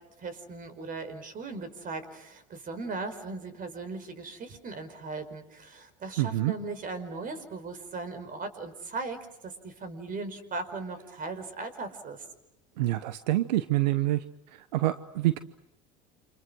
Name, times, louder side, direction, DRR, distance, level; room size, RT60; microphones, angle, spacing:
voice 1, 0.2-12.2, right 3 dB, 40° right, 11 dB, 5.1 m, -38 dB
voice 2, 6.2-6.5 12.8-14.2 14.5-15.4, right 16 dB, 85° right, 12 dB, 1.0 m, -26 dB
29.0 x 27.5 x 6.3 m, 0.83 s
hypercardioid pair, 85°, 21 cm